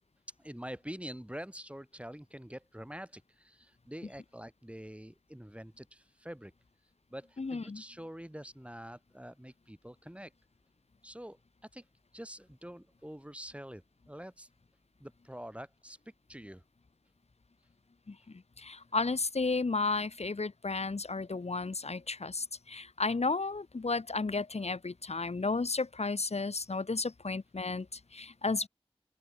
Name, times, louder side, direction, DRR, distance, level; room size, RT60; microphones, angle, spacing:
voice 1, 0.4-6.5 7.1-10.3 11.0-11.4 11.7-11.8 12.1-14.5 15.0-16.0 16.3-16.6, equal, 10° right, 4.5 m, -46 dB
voice 2, 7.4-7.8 18.1-18.2 18.6-28.7, left 3 dB, 90° left, 1.0 m, -33 dB
open air
wide cardioid pair, 40°, 11 cm